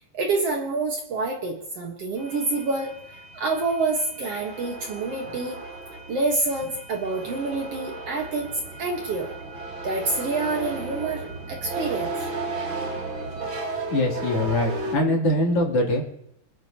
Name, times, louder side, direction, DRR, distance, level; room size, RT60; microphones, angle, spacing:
voice 1, 0.1-2.9 3.3-5.6 6.1-9.3 9.8-12.1, right 3 dB, 65° right, 1 dB, 1.5 m, -27 dB
sound 1, 2.2-15.0, right 3 dB, 45° right, 1.7 m, -35 dB
voice 2, 13.9-16.0, left 1 dB, 40° left, -2 dB, 3.4 m, -23 dB
27.0 x 9.9 x 2.9 m, 0.77 s
omnidirectional pair, 4.7 m